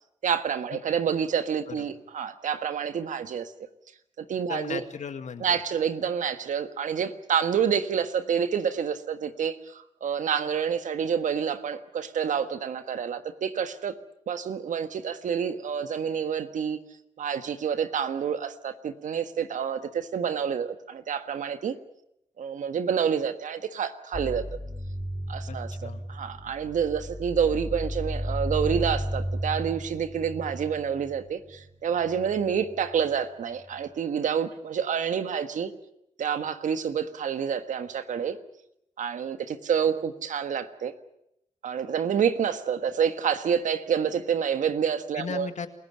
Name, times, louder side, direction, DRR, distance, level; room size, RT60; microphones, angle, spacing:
voice 1, 0.2-3.5 4.2-4.8 5.4-13.9 14.3-16.8 17.2-21.8 22.4-24.4 25.3-35.7 36.2-38.4 39.0-40.9 41.6-45.5, right 7 dB, 80° right, 10 dB, 1.5 m, -28 dB
voice 2, 4.5-5.6 25.5-26.0 45.1-45.7, left 6 dB, 70° left, 9 dB, 2.0 m, -36 dB
sound 1, 24.1-31.6 32.0-32.9, equal, 45° left, 4.5 m, -34 dB
28.5 x 15.5 x 8.8 m, 0.78 s
cardioid pair, 50°, 13 cm